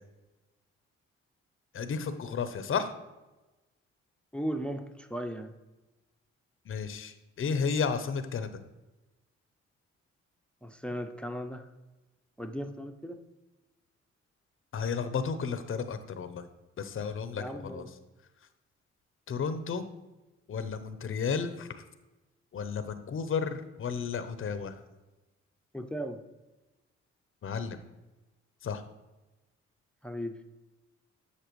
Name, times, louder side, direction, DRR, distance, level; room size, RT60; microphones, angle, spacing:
voice 1, 1.7-2.9 6.7-8.5 14.7-16.4 16.8-18.0 19.3-19.9 20.5-21.7 22.5-24.7 27.4-27.8 28.6-28.8, left 6 dB, 45° left, 10 dB, 0.7 m, -33 dB
voice 2, 4.3-5.5 10.6-11.6 12.4-13.2 17.4-17.9 25.7-26.2 30.0-30.3, equal, 5° left, 7 dB, 0.6 m, -36 dB
8.2 x 5.8 x 3.1 m, 1.1 s
supercardioid pair, 50°, 30 cm